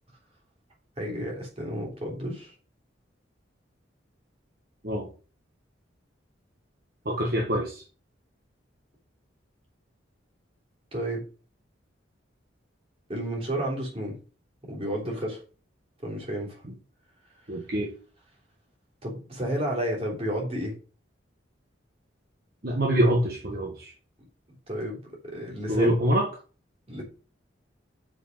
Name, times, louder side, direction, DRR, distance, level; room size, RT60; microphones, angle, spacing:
voice 1, 1.0-2.5 10.9-11.2 13.1-14.2 14.6-15.4 16.0-16.6 19.0-20.7 24.7-26.0 26.9-27.0, equal, 30° right, -2 dB, 3.2 m, -31 dB
voice 2, 7.0-7.8 17.5-17.9 22.6-23.9 25.7-26.3, equal, 50° right, -1 dB, 1.4 m, -25 dB
6.3 x 5.3 x 5.3 m, 0.37 s
head